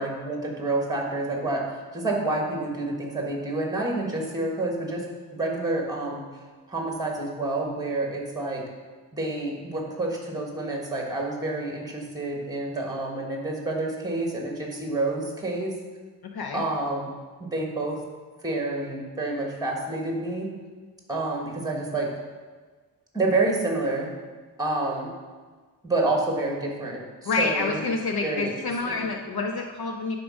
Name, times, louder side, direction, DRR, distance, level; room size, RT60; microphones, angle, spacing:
voice 1, 0.0-1.6 1.9-5.0 5.3-6.2 6.7-8.6 9.1-15.7 16.5-17.1 17.4-18.0 18.4-20.5 21.1-22.1 23.1-24.1 24.6-25.1 25.8-27.8 28.2-28.5 28.8-29.1, right 2 dB, 10° right, 0 dB, 1.3 m, -28 dB
voice 2, 27.3-30.2, left 3 dB, 60° left, 3 dB, 0.6 m, -28 dB
9.8 x 3.8 x 6.1 m, 1.4 s
wide cardioid pair, 180°, 42 cm